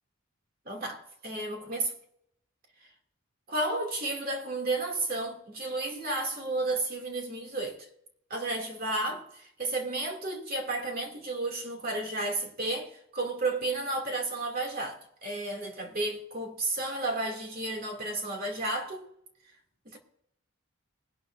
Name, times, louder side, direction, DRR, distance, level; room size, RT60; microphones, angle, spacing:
voice 1, 0.7-1.9 3.5-7.9 8.3-19.1 19.9-20.0, right 2 dB, 45° right, 2.5 m, -32 dB
21.0 x 11.0 x 2.6 m
head